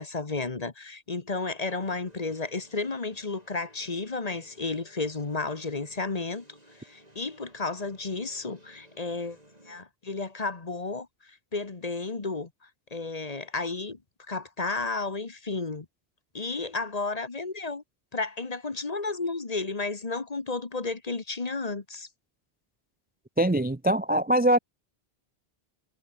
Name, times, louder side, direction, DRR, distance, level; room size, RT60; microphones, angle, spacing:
voice 1, 0.0-6.4 6.8-9.4 9.7-11.1 11.5-12.5 12.9-14.0 14.3-15.9 16.3-17.8 18.1-22.1, left 3 dB, 35° left, 1.5 m, -32 dB
sound 1, 1.8-9.8, right 1 dB, 35° right, 7.6 m, -57 dB
voice 2, 23.4-24.6, right 1 dB, 10° right, 0.5 m, -22 dB
omnidirectional pair, 1.1 m